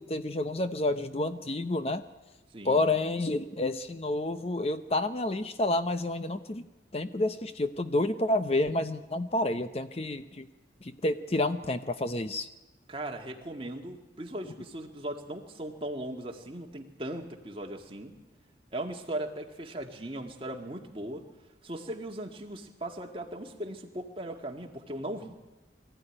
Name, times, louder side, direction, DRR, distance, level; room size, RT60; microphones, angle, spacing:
voice 1, 0.0-2.0 2.6-6.6 6.9-10.5 10.8-12.5, left 2 dB, 35° left, 10 dB, 0.7 m, -29 dB
voice 2, 12.9-18.1 18.7-21.3 21.6-25.3, right 1 dB, 30° right, 2 dB, 1.9 m, -38 dB
23.5 x 15.0 x 10.0 m, 1.1 s
head